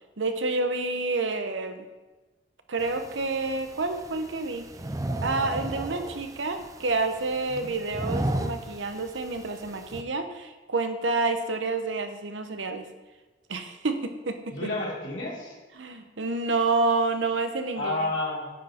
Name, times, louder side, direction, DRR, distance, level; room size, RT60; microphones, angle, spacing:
voice 1, 0.2-1.8 2.7-4.7 5.2-12.9 13.5-14.7 15.8-18.0, right 3 dB, 80° right, 7 dB, 0.9 m, -29 dB
sound 1, 2.8-10.0, right 1 dB, 20° right, 0.4 m, -35 dB
voice 2, 14.5-15.6 17.7-18.5, left 2 dB, 80° left, -5 dB, 3.2 m, -31 dB
9.3 x 7.7 x 4.3 m, 1.2 s
head